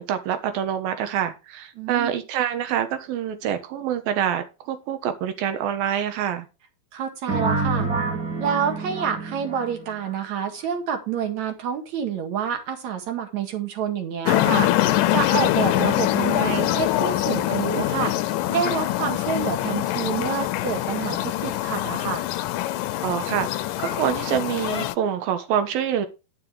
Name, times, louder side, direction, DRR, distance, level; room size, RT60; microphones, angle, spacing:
voice 1, 0.0-6.5 23.0-23.5 23.8-26.1, right 9 dB, 70° right, 3.0 m, -26 dB
voice 2, 1.8-2.1 6.9-7.9 8.4-22.3, right 7 dB, 55° right, 2.8 m, -28 dB
sound 1, 7.3-10.1, right 3 dB, 25° right, 2.9 m, -27 dB
sound 2, 14.3-24.9, left 15 dB, 80° left, 2.0 m, -24 dB
11.0 x 5.9 x 4.6 m
omnidirectional pair, 4.4 m